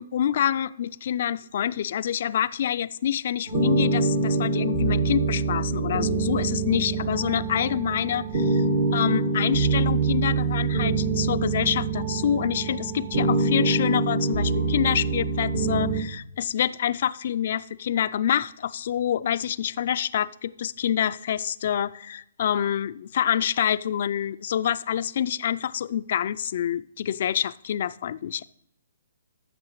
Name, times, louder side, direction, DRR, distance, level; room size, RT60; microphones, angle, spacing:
voice 1, 0.0-8.6 8.9-28.4, left 10 dB, 55° left, 17 dB, 0.3 m, -27 dB
sound 1, 3.5-16.0, right 3 dB, 60° right, 1.3 m, -25 dB
14.0 x 6.2 x 3.1 m, 0.76 s
hypercardioid pair, 140°, 0 cm